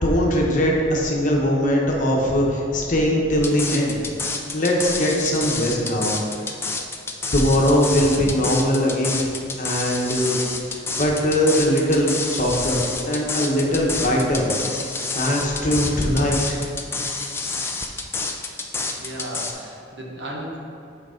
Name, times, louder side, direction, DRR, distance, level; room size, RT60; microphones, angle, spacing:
voice 1, 0.0-4.0 4.5-6.4 7.3-9.3 9.6-10.4 11.0-14.5 15.1-16.6, equal, 40° left, -2 dB, 1.0 m, -21 dB
sound 1, 3.4-19.5, left 3 dB, 15° left, 0.4 m, -28 dB
voice 2, 18.9-20.6, right 1 dB, 70° right, -2 dB, 1.2 m, -34 dB
6.6 x 4.6 x 5.0 m, 2.5 s
head